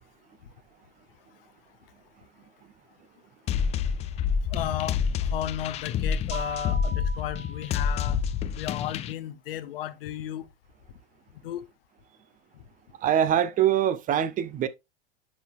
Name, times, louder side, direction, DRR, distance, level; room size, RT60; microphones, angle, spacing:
sound 1, 3.5-9.1, left 7 dB, 20° left, 0.4 m, -28 dB
voice 1, 4.5-8.2 8.6-10.5 11.4-11.6, left 11 dB, 60° left, 0.8 m, -34 dB
Mallet percussion, 6.3-8.4, right 2 dB, 75° right, 1.2 m, -40 dB
voice 2, 13.0-14.7, right 10 dB, 25° right, 0.6 m, -23 dB
11.0 x 3.9 x 2.4 m
figure-of-eight pair, 90°, 32 cm